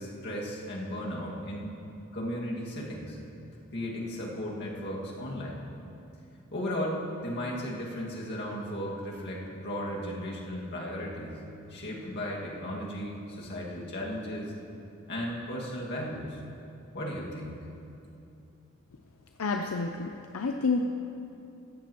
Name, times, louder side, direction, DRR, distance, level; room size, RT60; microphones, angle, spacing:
voice 1, 0.0-1.8 2.1-3.2 3.7-5.7 6.5-11.4 11.7-14.5 15.1-16.4 16.9-17.7, equal, 55° left, -3 dB, 2.0 m, -35 dB
voice 2, 19.4-20.8, left 4 dB, 80° left, 4 dB, 0.5 m, -29 dB
15.0 x 13.5 x 3.0 m, 2.8 s
head